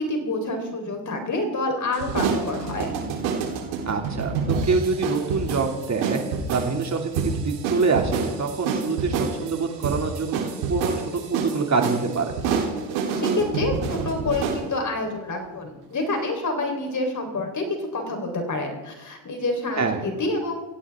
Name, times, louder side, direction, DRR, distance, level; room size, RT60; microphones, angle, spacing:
voice 1, 0.0-3.0 13.1-20.6, left 2 dB, 35° left, 4 dB, 4.4 m, -27 dB
sound 1, 1.9-14.6, right 5 dB, 85° right, 3.9 m, -28 dB
voice 2, 3.9-6.2 6.5-12.3 19.8-20.0, right 4 dB, 35° right, 3 dB, 2.7 m, -25 dB
18.5 x 16.0 x 3.7 m, 1.1 s
supercardioid pair, 75°, 50 cm